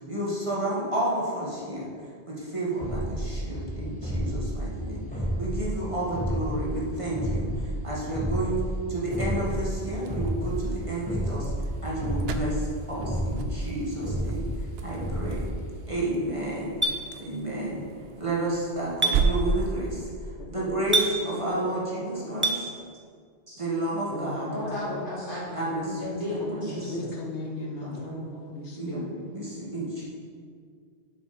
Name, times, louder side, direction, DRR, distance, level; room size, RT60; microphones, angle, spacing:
voice 1, 0.1-1.9 2.3-5.0 5.4-7.5 7.8-8.6 8.9-11.5 11.8-14.5 14.8-15.5 15.9-16.7 17.1-17.8 18.2-20.1 20.5-22.7 23.5-24.5 25.5-26.0 26.3-27.1 27.8-27.9 28.8-30.0, right 1 dB, 30° right, -6 dB, 1.8 m, -31 dB
sound 1, 2.8-15.9, equal, 5° left, 1.4 m, -31 dB
sound 2, 9.0-20.2, right 4 dB, 65° right, 0.8 m, -35 dB
Chink clink, 16.8-17.0 19.0-19.2 20.9-21.1 22.4-22.6, right 2 dB, 15° right, 0.6 m, -22 dB
voice 2, 20.4-20.9 21.3-21.9 22.2-22.5 24.1-24.9 26.7-29.2, left 2 dB, 80° left, 1 dB, 1.2 m, -38 dB
voice 3, 24.5-27.0 27.9-28.3, left 1 dB, 50° left, -7 dB, 2.9 m, -34 dB
7.3 x 6.1 x 5.9 m, 2.1 s
omnidirectional pair, 1.1 m